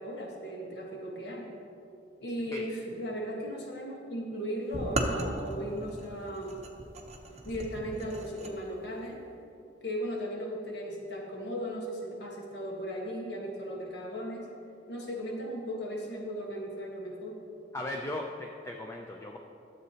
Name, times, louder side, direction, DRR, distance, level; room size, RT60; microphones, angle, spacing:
voice 1, 0.0-1.5 2.2-6.5 7.4-9.2 9.8-14.5 14.9-17.4, equal, 70° left, -1 dB, 1.4 m, -37 dB
sound 1, 4.7-8.5, right 1 dB, 35° right, 0.7 m, -36 dB
voice 2, 17.7-19.4, left 1 dB, 15° left, 1 dB, 0.4 m, -37 dB
12.5 x 7.4 x 2.8 m, 2.8 s
head